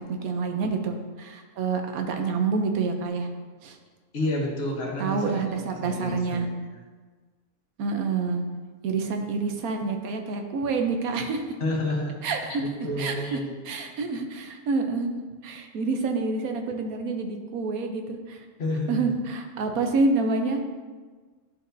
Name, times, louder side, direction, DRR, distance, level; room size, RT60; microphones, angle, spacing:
voice 1, 0.0-3.3 3.6-3.8 5.0-6.5 7.8-8.4 8.8-11.4 12.2-12.6 13.0-13.4 13.6-15.1 15.4-18.4 18.9-20.6, right 4 dB, 85° right, 5 dB, 1.1 m, -27 dB
voice 2, 4.1-6.5 11.6-12.1 12.4-13.5 18.6-19.1, left 1 dB, 50° left, 0 dB, 1.2 m, -30 dB
11.0 x 4.3 x 2.6 m, 1.4 s
omnidirectional pair, 1.5 m